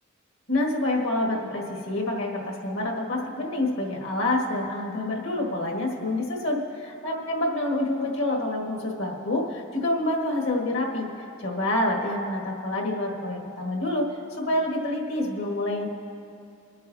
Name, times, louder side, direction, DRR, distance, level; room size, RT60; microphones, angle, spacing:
voice 1, 0.5-6.6 7.0-11.1 11.4-14.1 14.4-15.9, left 1 dB, 75° left, 0 dB, 1.8 m, -27 dB
25.0 x 9.3 x 2.7 m, 2.6 s
head